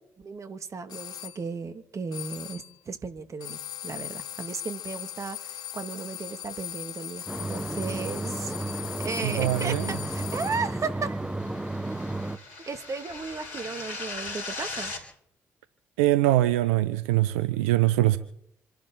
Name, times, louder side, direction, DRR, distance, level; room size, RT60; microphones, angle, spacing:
voice 1, 0.2-8.5 9.0-11.2 12.7-14.9, right 4 dB, 45° right, 2.2 m, -35 dB
sound 1, 0.9-1.4 2.1-2.8 3.4-10.8, left 11 dB, 65° left, 1.0 m, -39 dB
sound 2, 7.3-12.4, right 2 dB, 10° right, 1.2 m, -33 dB
voice 2, 9.2-9.9 16.0-18.2, right 15 dB, 85° right, 0.6 m, -23 dB
sound 3, 10.5-15.0, left 3 dB, 90° left, 3.9 m, -39 dB
27.0 x 11.5 x 3.9 m
hypercardioid pair, 45°, 7 cm